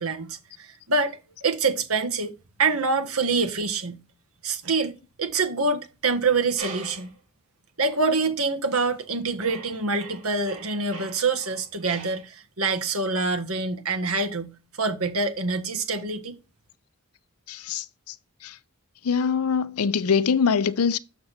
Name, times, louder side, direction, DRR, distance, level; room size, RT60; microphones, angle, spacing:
voice 1, 0.0-2.3 2.6-4.0 4.4-4.9 5.2-7.1 7.8-16.4, right 3 dB, 80° right, 1.4 m, -26 dB
sound 1, 6.6-7.2 7.9-8.0 8.7-9.1 9.4-12.3, right 4 dB, 60° right, 3.2 m, -42 dB
voice 2, 17.5-18.1 18.4-18.6 19.0-21.0, left 6 dB, 90° left, 0.6 m, -23 dB
6.8 x 6.8 x 4.2 m
head